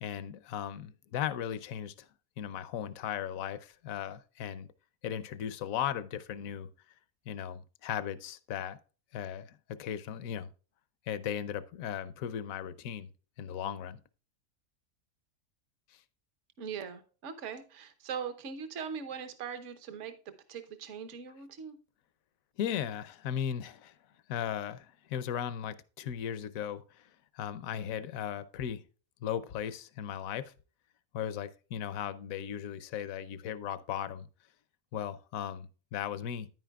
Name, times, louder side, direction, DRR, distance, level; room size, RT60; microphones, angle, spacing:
voice 1, 0.0-2.1 2.4-4.7 5.0-6.7 7.3-8.8 9.1-10.5 11.1-13.1 13.4-14.0 22.6-23.9 24.3-27.1 27.3-28.8 29.2-30.5 31.1-34.3 34.9-36.5, left 9 dB, 75° left, 1.1 m, -37 dB
voice 2, 16.6-20.2 20.5-21.8, right 7 dB, 60° right, 1.2 m, -40 dB
9.8 x 9.2 x 2.3 m
omnidirectional pair, 1.5 m